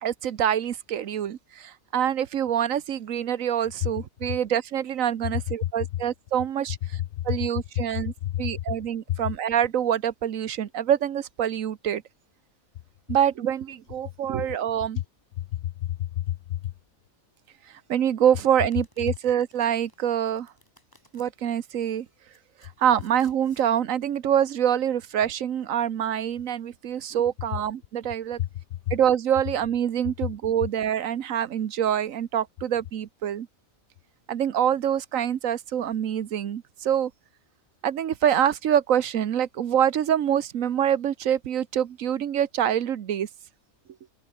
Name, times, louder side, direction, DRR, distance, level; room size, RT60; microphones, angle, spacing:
voice 1, 0.0-12.0 13.1-15.0 17.9-20.5 21.1-22.1 22.8-28.4 28.9-33.5 34.3-37.1 37.8-43.3, right 9 dB, 70° right, 1.3 m, -25 dB
voice 2, 6.9-7.4 7.7-7.8 8.2-8.5 9.1-9.2 15.4-16.7 28.4-28.5 28.9-29.0, left 13 dB, 65° left, 0.8 m, -29 dB
Domestic sounds home sounds, 18.7-21.3 22.0-23.7, left 1 dB, 15° left, 4.7 m, -60 dB
omnidirectional pair, 1.5 m